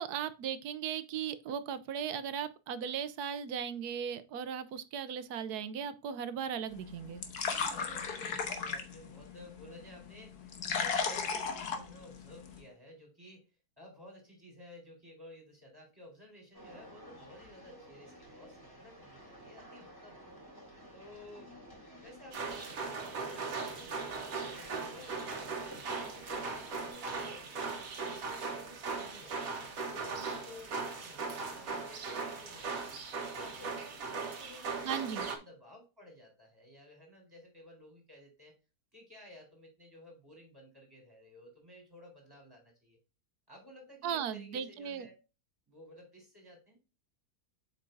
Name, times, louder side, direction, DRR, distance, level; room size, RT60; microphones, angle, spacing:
voice 1, 0.0-7.2 34.9-35.3 44.0-45.1, right 8 dB, 85° right, 1.3 m, -37 dB
sound 1, 6.7-12.6, left 5 dB, 85° left, 1.7 m, -37 dB
voice 2, 7.4-13.5 13.8-20.2 20.9-21.5 22.0-25.8 26.1-29.6 29.9-32.9 33.4-38.6 38.9-43.0 43.5-45.1 45.7-46.8, left 1 dB, 15° right, 3.8 m, -54 dB
sound 2, 16.5-26.9, equal, 15° left, 3.7 m, -52 dB
sound 3, 22.3-35.4, right 4 dB, 60° right, 1.6 m, -39 dB
7.7 x 5.8 x 2.6 m
omnidirectional pair, 1.6 m